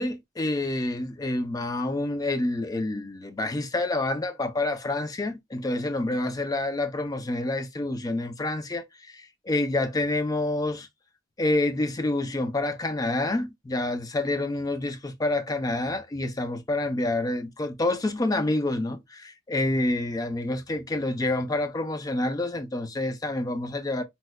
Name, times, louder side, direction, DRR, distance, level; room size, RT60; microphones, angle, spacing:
voice 1, 0.0-10.9 11.4-24.0, left 2 dB, 20° left, 0.3 m, -28 dB
4.1 x 2.1 x 2.3 m
head